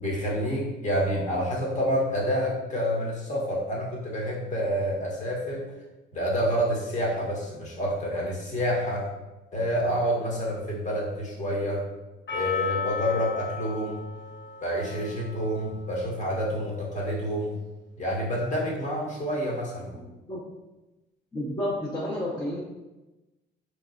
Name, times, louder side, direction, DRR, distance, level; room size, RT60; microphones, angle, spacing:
voice 1, 0.0-5.6 6.1-9.0 9.5-11.8 12.3-14.0 14.6-17.6 18.0-20.0, equal, 40° left, -3 dB, 1.1 m, -28 dB
Percussion, 12.3-16.6, left 5 dB, 65° left, 0.8 m, -35 dB
voice 2, 19.9-20.4 21.3-22.6, left 1 dB, 20° left, -6 dB, 0.7 m, -31 dB
3.4 x 3.0 x 2.5 m, 1.1 s
cardioid pair, 90°, 20 cm